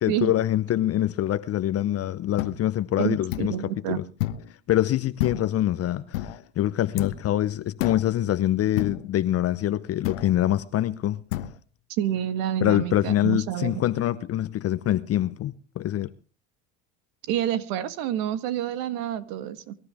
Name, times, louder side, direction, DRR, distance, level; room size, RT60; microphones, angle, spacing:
voice 1, 0.0-4.0 4.7-11.2 12.6-16.1, left 12 dB, 40° left, 0.8 m, -25 dB
sound 1, 2.4-2.6 3.3-3.6 4.2-4.5 5.2-5.6 6.1-6.4 7.0-7.3 7.8-8.1 8.8-9.1 10.0-10.4 11.3-11.5, left 14 dB, 75° left, 1.2 m, -30 dB
voice 2, 3.0-4.0 12.0-13.7 17.3-19.7, right 11 dB, 65° right, 1.7 m, -28 dB
24.0 x 13.0 x 3.5 m
hypercardioid pair, 75°, 37 cm